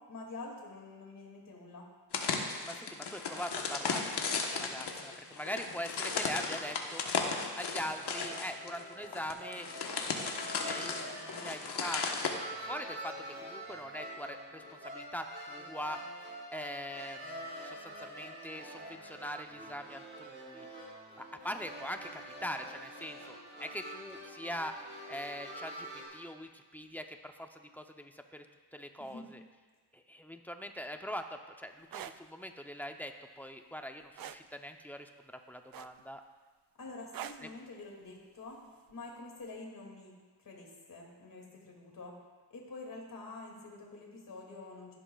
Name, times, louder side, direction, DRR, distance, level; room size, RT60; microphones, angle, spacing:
voice 1, 0.0-1.9 29.0-29.3 36.8-42.2 42.5-44.9, left 3 dB, 50° left, -1 dB, 2.4 m, -47 dB
sound 1, 2.1-12.3, left 5 dB, 70° left, 1.3 m, -35 dB
voice 2, 2.6-7.0 7.5-9.7 10.1-12.0 12.4-16.0 16.5-20.7 21.2-24.7 25.1-28.5 28.7-29.4 29.9-36.2 37.4-37.5, equal, 5° left, 5 dB, 0.7 m, -42 dB
sound 2, 7.6-26.1, right 1 dB, 30° right, 3.9 m, -46 dB
sound 3, 31.8-32.2 34.2-34.4 35.7-36.2 37.1-37.5 38.9-39.1, right 10 dB, 60° right, 0.5 m, -42 dB
15.5 x 11.5 x 2.4 m, 1.4 s
wide cardioid pair, 110°, 41 cm